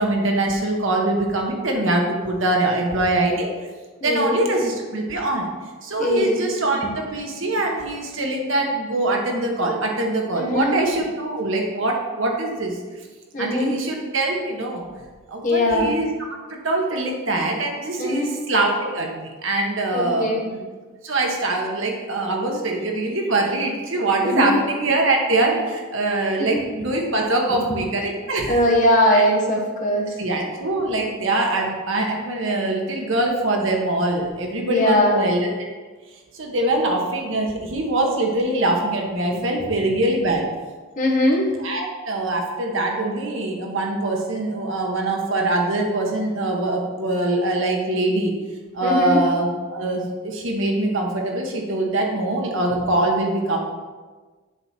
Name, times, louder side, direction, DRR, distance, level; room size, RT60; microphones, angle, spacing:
voice 1, 0.0-3.7 4.0-5.5 5.8-12.8 13.4-14.9 15.3-16.1 16.5-20.6 21.0-28.6 29.1-29.2 30.2-35.5 36.3-40.4 41.6-48.3 48.7-53.6, right 2 dB, 65° right, 0 dB, 1.3 m, -23 dB
voice 2, 4.0-4.4 6.0-6.4 10.4-10.8 13.3-13.7 15.4-15.9 18.0-18.3 19.9-20.4 24.2-24.6 26.5-26.9 27.5-27.6 28.5-30.1 34.6-35.2 39.3-39.7 41.0-41.6 48.8-49.2, left 1 dB, 35° left, -2 dB, 1.5 m, -21 dB
7.9 x 4.2 x 5.9 m, 1.3 s
head